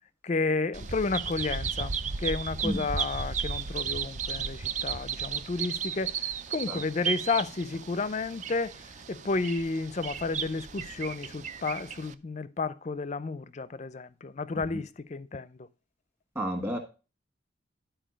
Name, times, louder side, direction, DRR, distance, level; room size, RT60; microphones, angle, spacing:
voice 1, 0.2-6.1 6.5-8.7 9.1-15.6, left 3 dB, 35° left, 0.4 m, -31 dB
Bird vocalization bird call bird song, 0.7-12.1, right 6 dB, 40° right, 0.4 m, -34 dB
voice 2, 16.3-16.8, equal, 15° right, 1.6 m, -31 dB
11.5 x 4.5 x 5.0 m
head